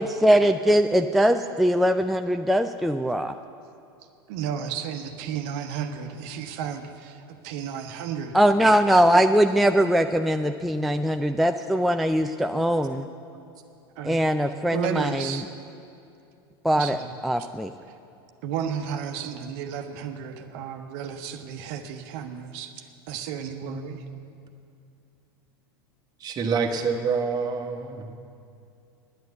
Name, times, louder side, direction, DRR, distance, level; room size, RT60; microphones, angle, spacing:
voice 1, 0.0-3.3 8.3-13.1 14.0-15.2 16.6-17.0 17.2-17.7, equal, ahead, 6 dB, 0.3 m, -21 dB
voice 2, 4.3-8.4 14.0-14.2 14.7-15.5 16.8-17.1 18.4-24.0, right 8 dB, 60° right, 6 dB, 1.0 m, -33 dB
voice 3, 26.2-28.0, right 5 dB, 30° right, 4 dB, 1.3 m, -27 dB
10.5 x 9.4 x 8.0 m, 2.5 s
hypercardioid pair, 100°, 13 cm